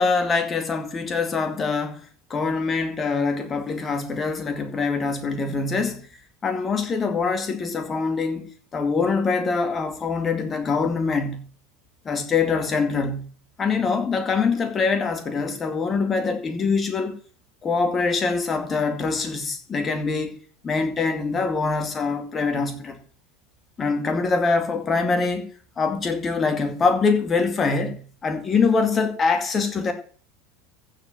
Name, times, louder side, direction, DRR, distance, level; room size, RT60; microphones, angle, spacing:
voice 1, 0.0-2.0 2.3-6.1 6.4-11.5 12.1-13.3 13.6-17.2 17.6-20.4 20.6-23.0 23.8-25.5 25.8-29.9, left 4 dB, 25° left, 2.2 m, -24 dB
14.5 x 5.1 x 7.0 m
figure-of-eight pair, 75°, 0 cm